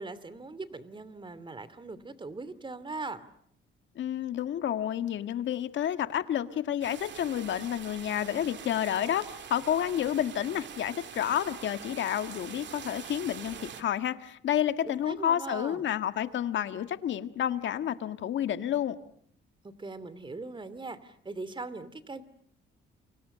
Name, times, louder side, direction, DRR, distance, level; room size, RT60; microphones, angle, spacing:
voice 1, 0.0-3.2 14.8-15.8 19.6-22.2, right 3 dB, 25° right, 15 dB, 2.7 m, -40 dB
voice 2, 3.9-9.3 9.5-19.0, left 10 dB, 70° left, 10 dB, 1.7 m, -30 dB
sound 1, 6.8-13.8, right 8 dB, 65° right, 2.3 m, -44 dB
29.5 x 25.5 x 6.8 m, 0.65 s
cardioid pair, 90°, 20 cm